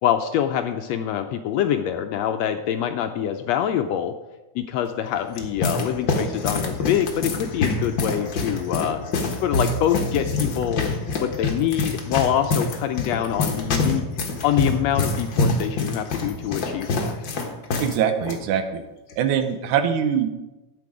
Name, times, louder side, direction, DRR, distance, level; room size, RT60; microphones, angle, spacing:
voice 1, 0.0-4.1 4.5-9.0 9.4-10.9 11.2-14.0 14.4-17.2, left 10 dB, 80° left, 6 dB, 1.6 m, -25 dB
sound 1, 5.1-18.0 18.2-18.4 19.1-19.4, left 3 dB, 50° left, 1.6 m, -26 dB
voice 2, 17.8-18.8 19.2-20.4, right 8 dB, 80° right, 7 dB, 2.4 m, -23 dB
13.0 x 8.4 x 4.9 m, 1.1 s
omnidirectional pair, 3.5 m